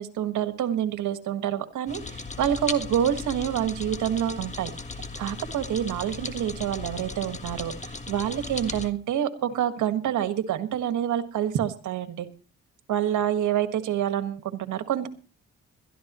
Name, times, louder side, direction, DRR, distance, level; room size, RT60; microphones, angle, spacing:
voice 1, 0.0-4.7 5.2-12.3 12.9-15.1, right 10 dB, 75° right, 10 dB, 1.6 m, -27 dB
sound 1, 1.9-8.9, left 3 dB, 25° left, 1.5 m, -37 dB
21.5 x 13.0 x 3.0 m, 0.35 s
cardioid pair, 90°, 30 cm